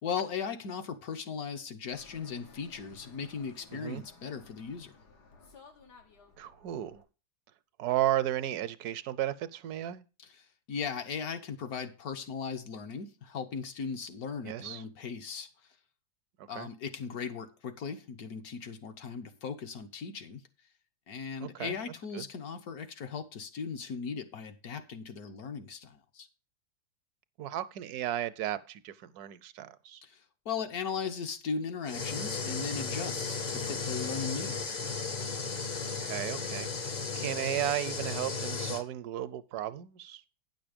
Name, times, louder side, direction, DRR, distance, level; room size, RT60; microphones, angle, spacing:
voice 1, 0.0-5.0 10.7-15.5 16.5-20.4 21.1-26.3 30.0-34.8, left 6 dB, 70° left, 1.4 m, -38 dB
Fixed-wing aircraft airplane, 1.9-7.0, left 4 dB, 85° left, 2.1 m, -56 dB
voice 2, 3.7-4.0 6.4-7.0 7.8-10.1 14.4-14.8 16.4-16.7 21.4-21.8 22.1-22.2 27.4-30.0 36.0-40.2, right 12 dB, 75° right, 1.1 m, -34 dB
sound 1, 31.9-38.8, left 4 dB, 40° left, 0.6 m, -35 dB
9.5 x 6.1 x 5.0 m
omnidirectional pair, 1.7 m